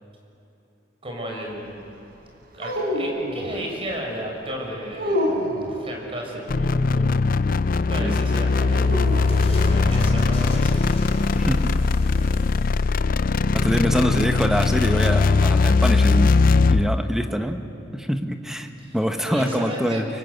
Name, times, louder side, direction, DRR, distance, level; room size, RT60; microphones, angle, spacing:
voice 1, 1.0-1.8 2.5-5.3 5.7-7.2 7.9-9.0 9.4-11.0 18.8-20.0, right 1 dB, 30° right, 0 dB, 5.9 m, -34 dB
sound 1, 2.6-3.6 4.9-5.8 8.8-9.9, equal, 55° right, 4.2 m, -27 dB
sound 2, 6.5-17.0, left 4 dB, 50° left, 0.5 m, -20 dB
sound 3, 8.4-14.6, left 1 dB, 35° left, 4.5 m, -35 dB
voice 2, 11.3-11.7 13.5-17.6 17.9-18.7 18.9-20.1, equal, 5° right, 6 dB, 1.4 m, -25 dB
29.0 x 24.0 x 8.2 m, 2.8 s
head